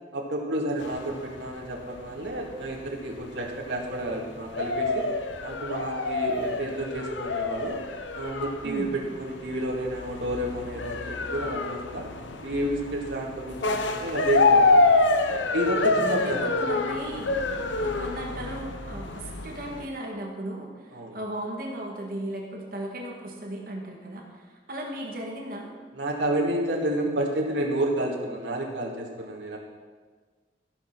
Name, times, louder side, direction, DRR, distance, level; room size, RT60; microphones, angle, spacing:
voice 1, 0.1-5.1 5.4-7.8 8.1-12.1 12.4-14.8 15.3-16.5 20.9-21.2 25.9-29.6, right 1 dB, 75° right, -1 dB, 2.1 m, -30 dB
sound 1, 0.8-19.9, left 3 dB, 85° left, 0.9 m, -27 dB
voice 2, 8.6-9.0 16.1-17.3 17.8-24.4 24.7-25.7, right 1 dB, 50° right, 0 dB, 1.9 m, -36 dB
15.0 x 6.5 x 6.1 m, 1.5 s
head